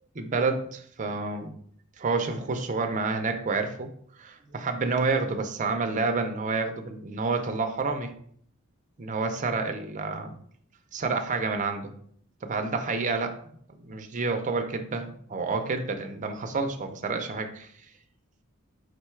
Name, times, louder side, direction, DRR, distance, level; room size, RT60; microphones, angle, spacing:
voice 1, 0.1-1.5 2.0-3.9 4.2-8.1 9.0-10.4 10.9-11.9 12.4-13.3 13.8-17.7, right 4 dB, 35° right, 5 dB, 0.5 m, -29 dB
4.9 x 2.3 x 4.4 m, 0.62 s
head